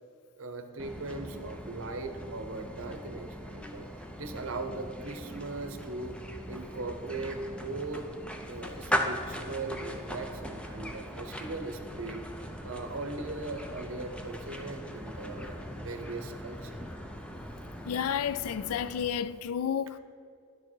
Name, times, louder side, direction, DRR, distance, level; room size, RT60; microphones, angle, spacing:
voice 1, 0.4-3.9 4.2-6.2 6.5-8.1 8.4-12.2 12.6-16.8, right 3 dB, 65° right, 0.8 m, -39 dB
sound 1, 0.8-19.4, equal, 5° left, 0.5 m, -39 dB
voice 2, 17.9-20.0, left 8 dB, 90° left, 0.3 m, -31 dB
10.5 x 6.4 x 4.6 m
head